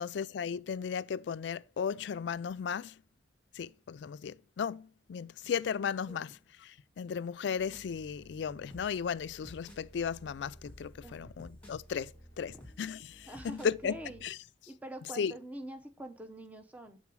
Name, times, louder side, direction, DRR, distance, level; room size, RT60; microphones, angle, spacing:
voice 1, 0.0-3.0 3.5-14.4 15.1-15.3, left 7 dB, 70° left, 0.3 m, -36 dB
sound 1, 7.6-14.3, equal, 5° left, 2.2 m, -54 dB
voice 2, 13.3-14.2 14.7-17.0, right 1 dB, 10° right, 0.7 m, -45 dB
7.3 x 3.8 x 4.7 m
head